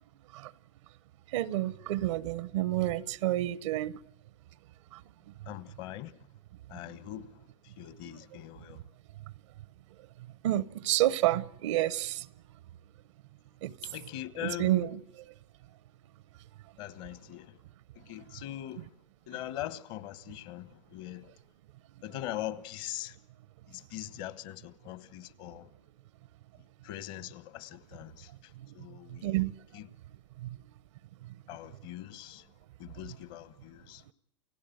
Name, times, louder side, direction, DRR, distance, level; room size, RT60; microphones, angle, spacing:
voice 1, 1.3-3.9 4.9-5.0 8.0-8.2 10.4-12.3 13.6-13.7 14.4-14.9 29.1-29.5 30.4-30.6, right 15 dB, 65° right, 0.9 m, -29 dB
voice 2, 5.5-6.3 6.7-8.8 13.8-14.9 16.8-17.6 17.9-18.9 19.3-21.3 22.0-23.2 23.7-25.7 26.8-29.4 29.7-29.9 31.5-32.5 32.8-34.0, left 14 dB, 50° left, 1.3 m, -42 dB
29.5 x 16.0 x 8.0 m
hypercardioid pair, 130°, 16 cm